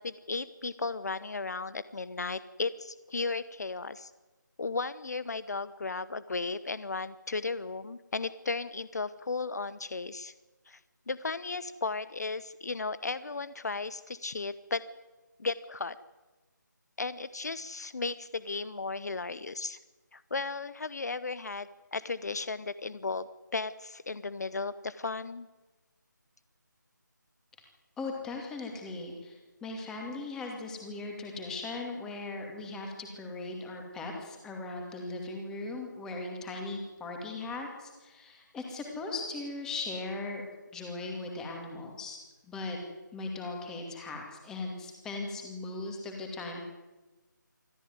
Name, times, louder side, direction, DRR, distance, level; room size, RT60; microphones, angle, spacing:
voice 1, 0.0-4.1 4.6-10.3 10.7-10.8 11.1-14.8 15.4-16.0 17.0-19.8 20.1-25.5, left 4 dB, 55° left, 16 dB, 0.9 m, -35 dB
voice 2, 28.0-40.4 40.7-42.2 42.5-42.8 43.1-46.6, left 3 dB, 5° left, 2 dB, 2.5 m, -38 dB
25.0 x 15.0 x 9.6 m, 1.2 s
figure-of-eight pair, 165°, 11 cm